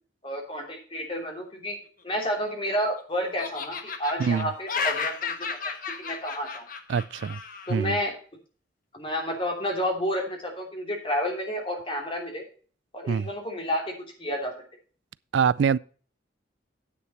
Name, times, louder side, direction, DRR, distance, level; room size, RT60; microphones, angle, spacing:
voice 1, 0.2-1.8 2.0-6.6 7.7-8.1 8.9-12.4 12.9-14.5, equal, 30° left, 3.2 m, -30 dB
Laughter, 2.2-3.0 3.4-7.8, left 5 dB, 50° left, 1.3 m, -33 dB
voice 2, 6.9-7.4 7.7-8.0 13.1-13.3 15.3-15.8, right 6 dB, 80° right, 0.4 m, -24 dB
10.0 x 8.3 x 4.3 m
head